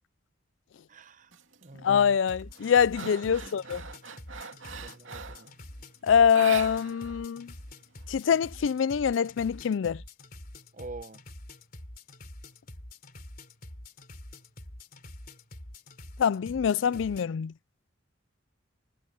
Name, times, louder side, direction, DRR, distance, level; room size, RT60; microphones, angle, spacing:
voice 1, 0.9-1.3 1.6-2.0 3.3-3.5 4.8-5.5 10.7-11.2, right 3 dB, 40° right, 0.9 m, -45 dB
sound 1, 1.3-1.7 2.1-5.5 6.3-7.2 7.5-7.6 8.0-8.9, right 5 dB, 80° right, 2.6 m, -41 dB
voice 2, 1.8-3.8 6.0-7.5 8.1-10.0 16.2-17.5, left 7 dB, 70° left, 0.4 m, -24 dB
sound 2, 2.2-17.3, left 1 dB, 45° left, 3.6 m, -46 dB
head